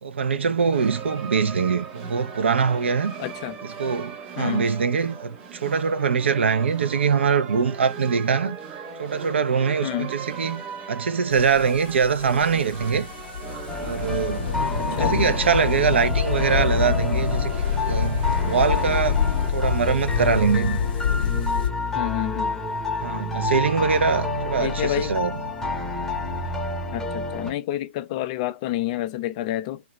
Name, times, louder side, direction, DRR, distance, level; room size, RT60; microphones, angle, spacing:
voice 1, 0.0-3.1 3.6-8.6 9.0-10.6 10.9-13.1 13.8-14.5 14.9-17.5 17.9-19.2 19.5-20.8 23.0-25.4, right 6 dB, 65° right, 0.6 m, -23 dB
sound 1, 0.7-19.5, right 6 dB, 20° right, 0.9 m, -39 dB
voice 2, 3.2-3.6 4.4-4.6 9.8-10.1 14.8-15.1 21.9-22.5 24.6-25.1 26.9-29.8, left 13 dB, 30° left, 0.3 m, -28 dB
sound 2, 11.3-21.7, left 8 dB, 50° left, 0.8 m, -26 dB
sound 3, 13.7-27.5, left 2 dB, 5° left, 0.7 m, -29 dB
2.8 x 2.4 x 3.0 m
figure-of-eight pair, 125°, 7 cm